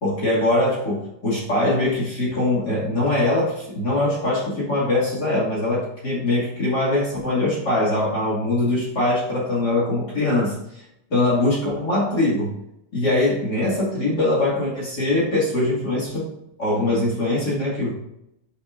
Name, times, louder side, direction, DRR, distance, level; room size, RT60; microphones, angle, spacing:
voice 1, 0.0-10.8 11.1-12.5 12.9-16.3 16.6-17.9, left 2 dB, 35° left, -6 dB, 1.5 m, -22 dB
9.8 x 6.5 x 2.6 m, 0.81 s
omnidirectional pair, 5.6 m